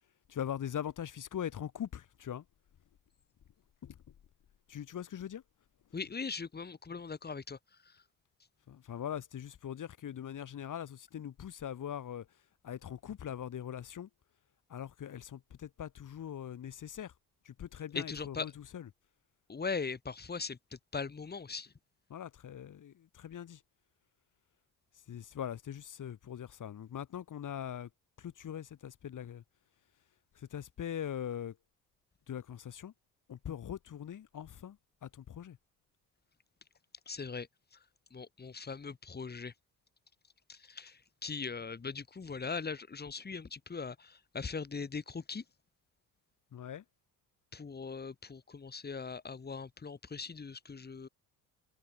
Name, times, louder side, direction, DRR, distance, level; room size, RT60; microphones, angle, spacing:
voice 1, 0.3-2.4 3.8-3.9 4.7-5.4 8.7-12.2 12.6-14.1 14.7-17.1 17.5-18.8 22.1-23.6 25.1-27.9 28.2-29.4 30.5-31.5 32.3-32.9 33.3-34.8 35.0-35.6 46.5-46.8, left 9 dB, 50° left, 1.9 m, -41 dB
voice 2, 5.9-8.0 17.9-18.5 19.5-21.7 37.1-37.8 38.1-39.5 40.5-45.4 47.5-51.1, left 5 dB, 25° left, 1.6 m, -40 dB
supercardioid pair, 60°, 40 cm